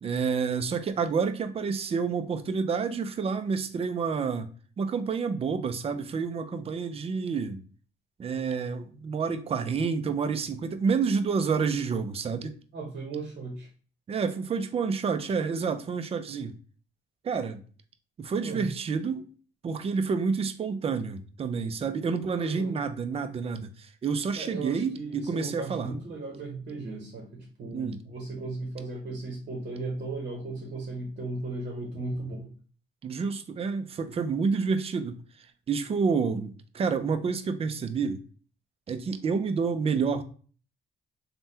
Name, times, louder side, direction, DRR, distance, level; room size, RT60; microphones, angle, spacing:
voice 1, 0.0-4.5 4.8-7.6 8.2-12.5 14.1-16.5 17.2-17.6 18.2-19.3 19.6-25.9 27.7-28.0 33.0-35.2 35.7-38.2 38.9-40.2, right 5 dB, 30° right, 0.4 m, -29 dB
voice 2, 12.7-13.7 18.3-18.7 22.3-22.8 24.3-32.5, right 2 dB, 50° right, 0.8 m, -36 dB
3.4 x 2.2 x 2.6 m
cardioid pair, 90°, 20 cm